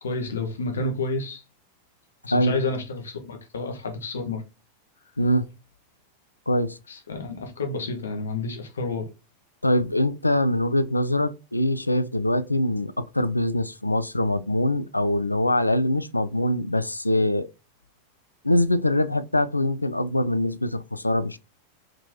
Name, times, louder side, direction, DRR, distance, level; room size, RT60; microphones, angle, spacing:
voice 1, 0.0-1.4 2.2-4.4 6.9-9.1, left 3 dB, 65° left, 1.0 m, -30 dB
voice 2, 5.2-5.5 6.5-6.8 9.6-17.5 18.4-21.4, left 1 dB, 85° left, 0.4 m, -23 dB
4.6 x 3.7 x 2.6 m
figure-of-eight pair, 90°, 0 cm